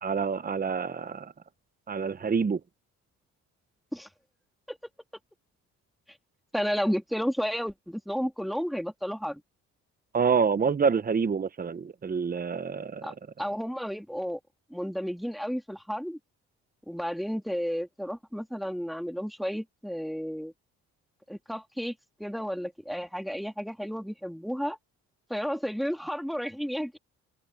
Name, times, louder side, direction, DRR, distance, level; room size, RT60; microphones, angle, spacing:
voice 1, 0.0-1.3 1.9-2.6 10.1-13.0, right 6 dB, 30° right, 1.1 m, -27 dB
voice 2, 6.5-9.4 13.0-14.4 14.7-16.2 16.9-20.5 21.3-21.9 22.2-24.8 25.3-27.0, equal, ahead, 3.4 m, -32 dB
cardioid pair, 90°, 30 cm